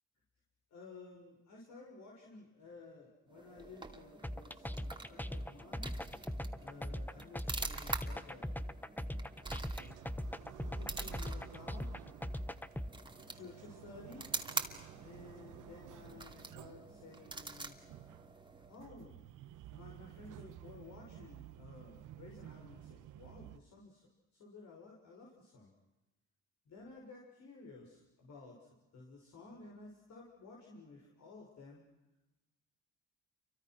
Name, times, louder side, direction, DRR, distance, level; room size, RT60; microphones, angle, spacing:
voice 1, 0.7-5.9 6.6-8.5 9.4-9.8 10.4-11.9 13.3-14.3 15.0-17.8 18.7-19.2 19.6-25.7 26.6-31.8, left 3 dB, 65° left, -2 dB, 6.7 m, -54 dB
sound 1, 3.3-18.9, right 3 dB, 15° right, 2.6 m, -46 dB
sound 2, 4.2-12.9, equal, 5° left, 1.0 m, -40 dB
sound 3, 9.8-23.6, right 13 dB, 85° right, 1.1 m, -54 dB
29.5 x 24.5 x 6.3 m, 1.0 s
cardioid pair, 90°, 30 cm